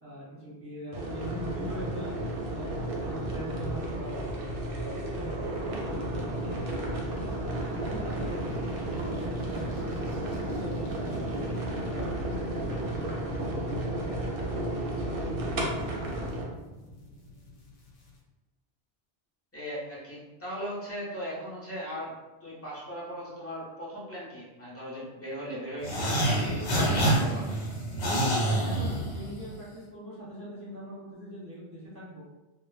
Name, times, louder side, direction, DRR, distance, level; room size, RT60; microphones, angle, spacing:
voice 1, 0.0-2.1 2.5-4.5 5.0-5.4 5.6-6.6 7.0-8.6 9.0-11.1 11.8-14.6 15.0-15.2 27.7-27.8 28.4-32.3, equal, 15° right, -8 dB, 0.9 m, -42 dB
Kettle Rolling Boil, 0.9-16.4, right 1 dB, 65° right, 0.7 m, -33 dB
sound 1, 6.5-18.2, equal, 60° left, 0.7 m, -45 dB
voice 2, 19.5-22.1 22.4-27.5, equal, 15° left, -7 dB, 0.5 m, -38 dB
sound 2, 25.8-29.5, right 1 dB, 80° left, 1.0 m, -27 dB
2.1 x 2.1 x 3.0 m, 1.1 s
omnidirectional pair, 1.1 m